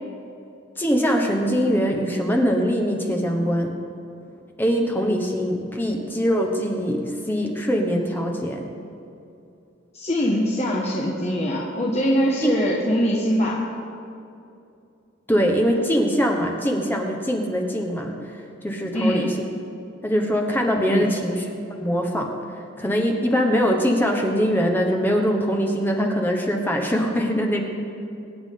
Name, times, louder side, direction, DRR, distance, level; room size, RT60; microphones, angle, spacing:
voice 1, 0.8-3.8 4.6-8.7 12.4-12.5 15.3-19.3 20.0-21.4 21.7-22.3 22.8-27.6, equal, 10° left, 1 dB, 1.2 m, -22 dB
voice 2, 9.9-13.7 18.9-19.3 20.9-21.2, equal, 35° left, -4 dB, 1.3 m, -23 dB
23.5 x 9.7 x 3.8 m, 2.6 s
head